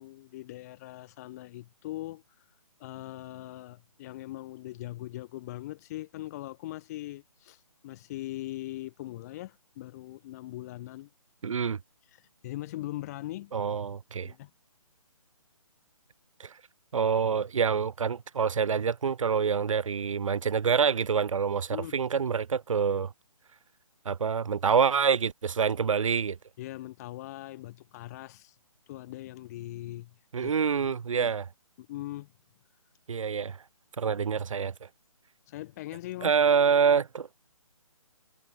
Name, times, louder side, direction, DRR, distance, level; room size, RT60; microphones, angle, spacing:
voice 1, 0.0-2.2 2.8-11.1 12.1-13.5 14.2-14.5 21.7-22.0 26.6-28.6 28.9-30.1 30.4-30.5 31.2-31.3 31.8-32.3 35.5-36.3, left 16 dB, 25° left, 2.9 m, -40 dB
voice 2, 11.4-11.8 13.5-14.3 16.4-16.5 16.9-23.1 24.0-26.4 30.3-31.5 33.1-33.6 34.0-34.9 36.2-37.3, right 6 dB, 65° right, 1.2 m, -26 dB
hypercardioid pair, 155°, 18 cm